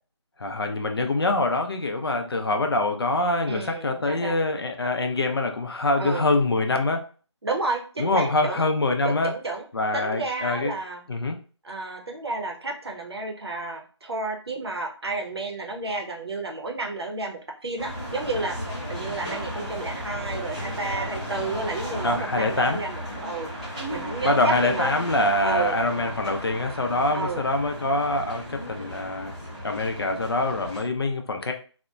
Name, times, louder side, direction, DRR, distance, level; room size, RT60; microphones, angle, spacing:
voice 1, 0.4-7.0 8.0-9.3 9.7-10.7 11.1-11.4 22.0-22.8 24.2-29.3 29.6-31.5, left 2 dB, 55° left, 5 dB, 0.5 m, -24 dB
voice 2, 3.4-4.4 6.0-6.2 7.4-8.6 9.0-9.6 9.9-11.1 11.6-18.6 18.9-23.5 23.9-24.9 25.4-25.8 27.1-27.5, right 3 dB, 60° right, 1 dB, 0.6 m, -31 dB
sound 1, 17.8-30.8, equal, 15° right, 0.5 m, -35 dB
2.8 x 2.1 x 2.3 m, 0.38 s
figure-of-eight pair, 155°, 15 cm